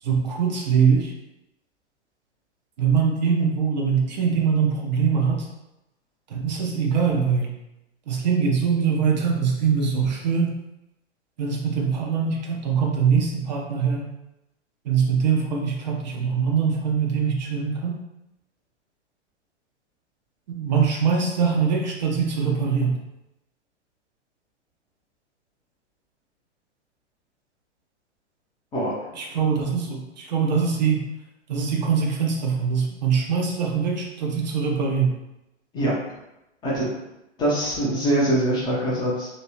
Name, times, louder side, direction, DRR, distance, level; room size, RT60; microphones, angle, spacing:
voice 1, 0.0-1.1 2.8-5.5 6.3-7.5 8.1-10.5 11.4-14.1 14.8-18.0 20.6-23.0 29.1-31.0 31.5-35.2, right 6 dB, 40° right, 0 dB, 0.5 m, -23 dB
voice 2, 35.7-36.2 36.6-36.9 37.4-39.3, right 1 dB, 10° left, -6 dB, 0.5 m, -23 dB
2.9 x 2.8 x 2.9 m, 0.92 s
figure-of-eight pair, 110°, 36 cm